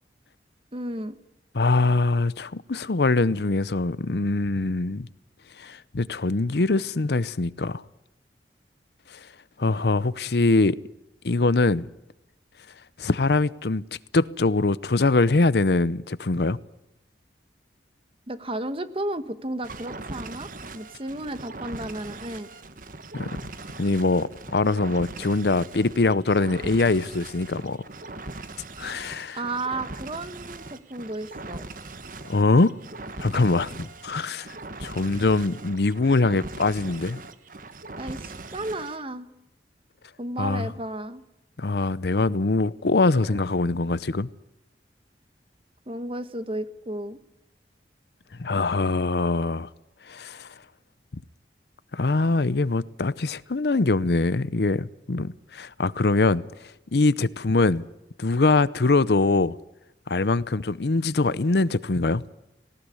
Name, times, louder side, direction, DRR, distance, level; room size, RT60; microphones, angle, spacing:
voice 1, 0.7-1.2 18.3-22.5 29.3-31.7 38.0-39.3 40.2-41.2 45.9-47.2, right 1 dB, 30° right, 1.3 m, -33 dB
voice 2, 1.5-5.1 5.6-7.8 9.1-9.2 9.6-10.8 11.2-11.9 13.0-13.8 14.1-16.6 23.1-23.3 23.8-27.8 28.8-29.4 32.3-32.7 33.2-34.5 34.8-37.2 40.4-40.7 41.6-44.3 48.4-49.7 50.1-50.5 51.9-56.4 56.9-57.8 58.2-59.6 60.1-62.2, left 3 dB, 65° left, 0.7 m, -23 dB
sound 1, 19.6-39.0, right 2 dB, 50° right, 1.4 m, -40 dB
19.0 x 18.0 x 9.8 m
head